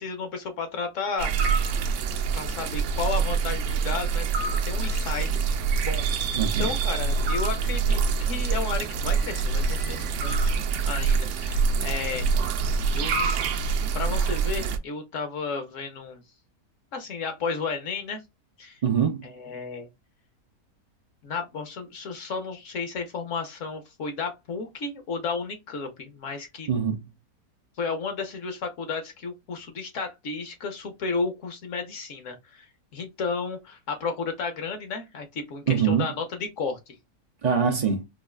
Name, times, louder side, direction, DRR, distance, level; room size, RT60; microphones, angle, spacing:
voice 1, 0.0-1.4 2.3-4.3 4.7-5.4 5.8-6.2 6.6-10.5 10.8-12.3 12.9-13.3 13.9-16.2 16.9-18.2 18.6-18.8 19.2-19.9 21.2-26.7 27.8-32.6 32.9-36.9 37.5-37.7, left 4 dB, 60° left, 1.1 m, -33 dB
sound 1, 1.2-14.8, right 5 dB, 65° right, 0.8 m, -25 dB
voice 2, 6.4-6.7 18.8-19.3 26.7-27.1 35.7-36.1 37.4-38.0, right 7 dB, 85° right, 0.3 m, -24 dB
4.7 x 2.4 x 2.3 m
omnidirectional pair, 1.6 m